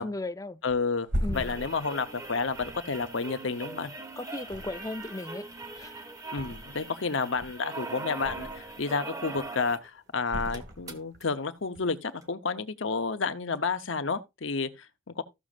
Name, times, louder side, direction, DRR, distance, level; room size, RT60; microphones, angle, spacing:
voice 1, 0.0-0.6 1.2-1.6 4.2-5.4 5.7-6.0, left 2 dB, 15° left, 0.5 m, -36 dB
voice 2, 0.6-3.9 6.3-15.2, left 4 dB, 70° left, 0.9 m, -31 dB
Thump thud, 0.7-4.0 4.4-5.2 5.5-7.0 7.3-8.8 9.2-9.7 10.3-11.3 11.6-11.8, equal, 60° right, 2.1 m, -38 dB
sound 1, 1.3-9.9 10.2-10.3 10.5-11.2 12.2-12.3, right 2 dB, 15° right, 1.0 m, -41 dB
15.0 x 6.2 x 2.5 m
head